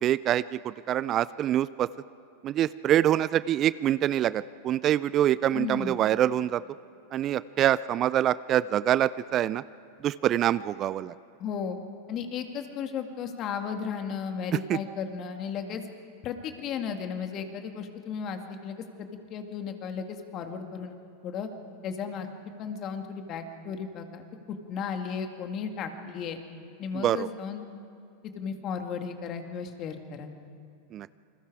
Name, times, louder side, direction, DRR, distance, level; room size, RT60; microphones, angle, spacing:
voice 1, 0.0-1.9 2.4-6.6 7.1-9.6 10.0-11.1 14.7-14.8 26.9-27.3 30.9-31.1, right 11 dB, 40° right, 18 dB, 0.4 m, -25 dB
voice 2, 5.5-6.0 11.4-11.8 12.1-15.8 16.2-21.0 21.2-21.5 21.8-22.3 22.6-26.4 26.8-27.6 28.4-30.3, left 6 dB, 40° left, 5 dB, 2.2 m, -35 dB
28.5 x 21.0 x 4.9 m, 2.5 s
hypercardioid pair, 100°, 0 cm